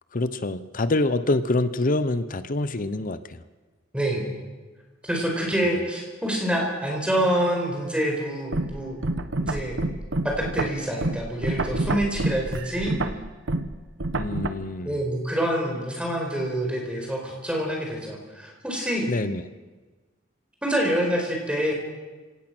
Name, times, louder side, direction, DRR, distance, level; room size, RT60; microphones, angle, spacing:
voice 1, 0.1-3.4 14.1-15.0 19.1-19.5, left 2 dB, 45° left, 13 dB, 0.8 m, -26 dB
voice 2, 3.9-4.3 5.0-9.0 9.4-9.8 10.2-13.0 14.8-19.1 20.6-21.7, right 1 dB, 5° right, -1 dB, 4.9 m, -26 dB
sound 1, 8.5-14.5, right 2 dB, 70° right, 1.1 m, -28 dB
27.0 x 17.5 x 6.1 m, 1.3 s
head